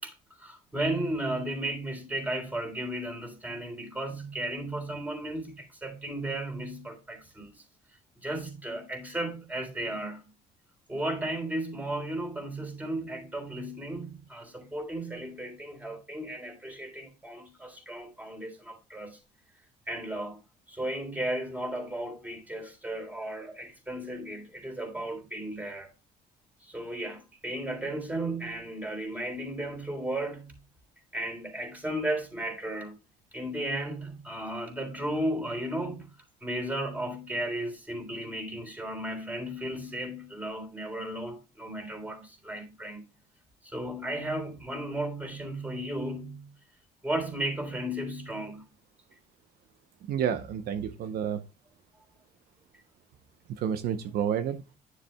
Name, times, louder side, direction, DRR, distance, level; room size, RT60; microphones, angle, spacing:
voice 1, 0.0-7.6 8.2-10.3 10.9-19.2 19.9-20.4 20.7-25.9 26.6-30.6 31.1-33.0 33.3-36.1 36.4-43.1 43.6-46.5 47.0-48.7, right 1 dB, 10° right, 3.4 m, -35 dB
voice 2, 50.1-51.4 53.6-54.6, right 8 dB, 65° right, 0.8 m, -30 dB
10.0 x 7.4 x 2.2 m
cardioid pair, 110°, 17 cm